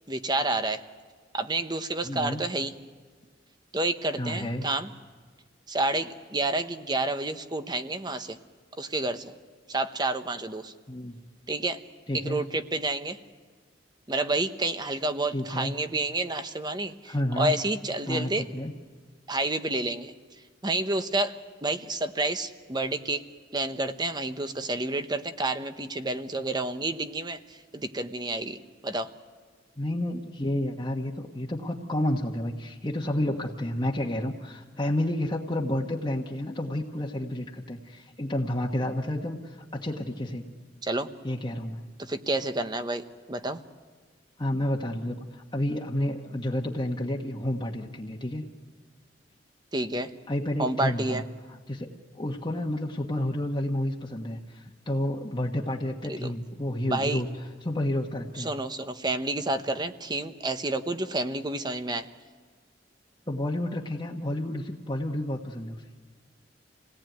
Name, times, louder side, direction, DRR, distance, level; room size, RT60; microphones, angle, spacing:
voice 1, 0.1-0.8 1.3-2.7 3.7-4.9 5.7-8.4 8.8-9.3 9.7-10.7 11.5-11.8 12.1-13.2 14.1-18.5 19.3-20.1 20.6-23.2 23.5-29.1 40.8-41.1 42.0-43.6 49.7-50.1 50.6-51.2 56.0-56.3 56.9-57.2 58.4-62.1, right 2 dB, 25° right, 9 dB, 1.0 m, -29 dB
voice 2, 2.0-2.4 4.2-4.7 10.9-11.2 12.1-12.4 15.3-15.7 17.1-17.5 18.1-18.7 29.8-40.4 41.2-41.8 44.4-48.4 50.3-51.2 51.7-51.9 52.1-57.3 57.6-58.5 63.3-65.8, left 1 dB, 25° left, -1 dB, 1.3 m, -30 dB
27.5 x 18.0 x 9.2 m, 1.5 s
head